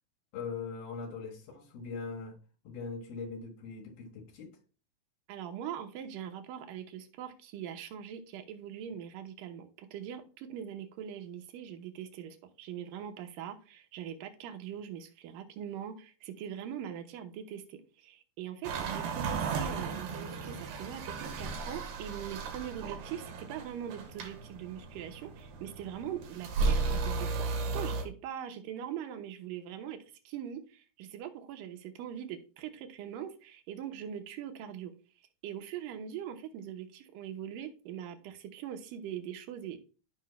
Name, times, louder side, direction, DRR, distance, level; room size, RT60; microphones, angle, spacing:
voice 1, 0.3-2.4 2.6-4.6, left 5 dB, 75° left, 3.3 m, -41 dB
voice 2, 5.3-34.9 35.4-39.8, right 9 dB, 70° right, 2.3 m, -42 dB
sound 1, 18.6-28.0, right 4 dB, 90° right, 3.5 m, -35 dB
15.5 x 5.3 x 2.2 m
omnidirectional pair, 4.3 m